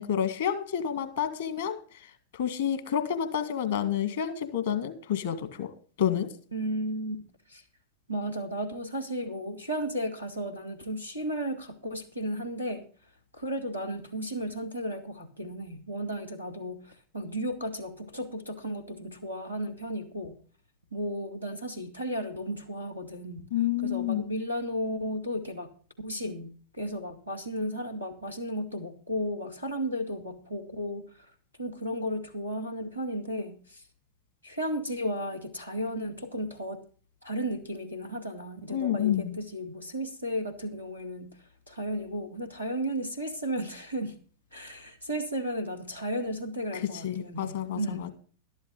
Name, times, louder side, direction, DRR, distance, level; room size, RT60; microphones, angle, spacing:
voice 1, 0.0-1.8 2.4-5.7 6.0-6.3 23.5-24.2 38.7-39.4 47.0-48.1, left 9 dB, 65° left, 10 dB, 2.0 m, -29 dB
voice 2, 6.5-7.2 7.5-7.6 8.1-12.8 13.3-20.4 20.9-23.5 23.8-25.7 26.0-31.1 31.6-33.8 34.4-36.8 37.2-41.4 41.7-44.2 44.5-48.1, equal, 90° left, 6 dB, 2.1 m, -34 dB
12.5 x 12.0 x 4.0 m, 0.42 s
figure-of-eight pair, 90°, 0 cm